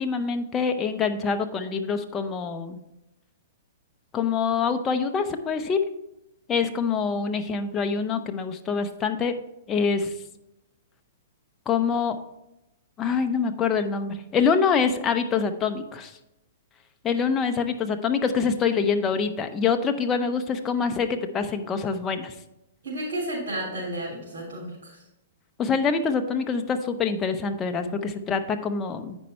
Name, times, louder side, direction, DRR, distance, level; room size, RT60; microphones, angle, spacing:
voice 1, 0.0-2.8 4.1-5.8 6.5-9.3 9.7-10.1 11.7-12.2 13.0-16.1 17.0-22.3 25.6-29.2, left 5 dB, 20° left, 6 dB, 0.7 m, -25 dB
voice 2, 22.8-25.0, right 1 dB, 65° right, -7 dB, 3.3 m, -32 dB
9.0 x 5.4 x 4.4 m, 0.89 s
hypercardioid pair, 140°, 0 cm